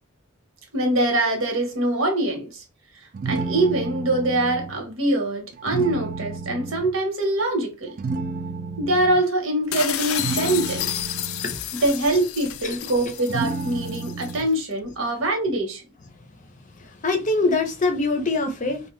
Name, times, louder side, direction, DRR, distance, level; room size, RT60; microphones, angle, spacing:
voice 1, 0.7-2.6 3.2-7.9 8.8-10.9 11.7-15.8, right 1 dB, 75° right, 1.1 m, -23 dB
sound 1, 3.1-4.8 5.5-6.9 8.0-9.2 10.1-11.5 13.3-14.5, right 4 dB, 40° right, 0.4 m, -31 dB
sound 2, 9.7-14.4, left 12 dB, 85° left, 0.3 m, -31 dB
voice 2, 17.0-18.8, left 3 dB, 35° left, 0.6 m, -23 dB
2.8 x 2.2 x 3.1 m
head